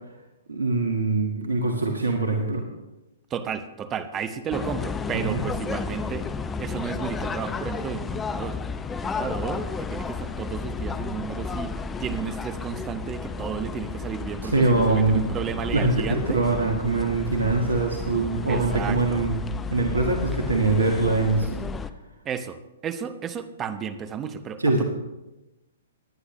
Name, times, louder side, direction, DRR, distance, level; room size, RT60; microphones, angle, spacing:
voice 1, 0.5-2.6 5.1-5.4 14.4-15.2 15.7-15.9 16.3-19.4 19.7-21.7 24.6-24.8, right 3 dB, 75° right, 2 dB, 1.5 m, -23 dB
voice 2, 3.3-6.3 6.6-8.6 8.9-16.4 18.5-19.2 22.2-22.6 22.8-24.8, right 7 dB, 20° right, 9 dB, 0.9 m, -33 dB
sound 1, 4.5-21.9, left 5 dB, 15° left, 0.5 m, -32 dB
19.0 x 9.9 x 3.1 m, 1.0 s
figure-of-eight pair, 115°, 0 cm